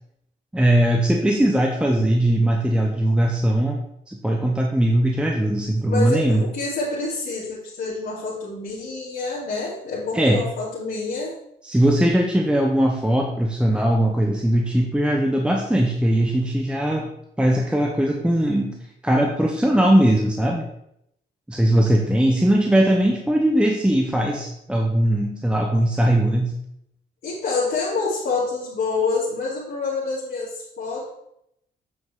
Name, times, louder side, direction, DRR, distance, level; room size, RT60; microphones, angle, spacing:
voice 1, 0.5-6.4 10.1-10.4 11.6-17.1 17.4-20.7 21.5-26.6, right 1 dB, 5° right, 1 dB, 0.9 m, -20 dB
voice 2, 5.9-11.3 27.2-31.1, left 3 dB, 55° left, -9 dB, 2.9 m, -27 dB
8.0 x 5.8 x 3.7 m, 0.78 s
cardioid pair, 90°, 20 cm